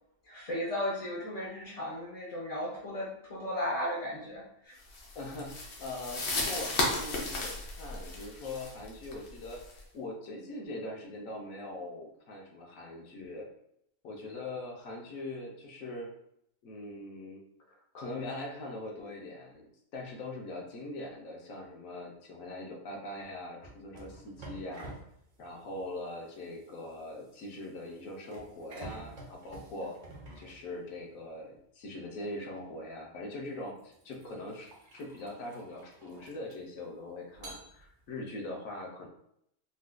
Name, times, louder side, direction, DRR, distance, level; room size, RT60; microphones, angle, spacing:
voice 1, 0.2-4.8, left 1 dB, 45° left, -6 dB, 0.5 m, -35 dB
sound 1, 4.9-9.8, left 2 dB, 60° left, 0.9 m, -35 dB
voice 2, 5.1-9.6 9.9-13.5 14.0-16.1 16.6-17.4 17.7-24.9 25.4-29.9 30.4-39.1, left 2 dB, 75° left, 0 dB, 1.2 m, -42 dB
sound 2, 23.6-31.2 32.6-32.8 33.5-36.8 37.3-38.2, right 2 dB, 45° right, 0.7 m, -50 dB
4.0 x 2.4 x 2.2 m, 0.73 s
omnidirectional pair, 1.4 m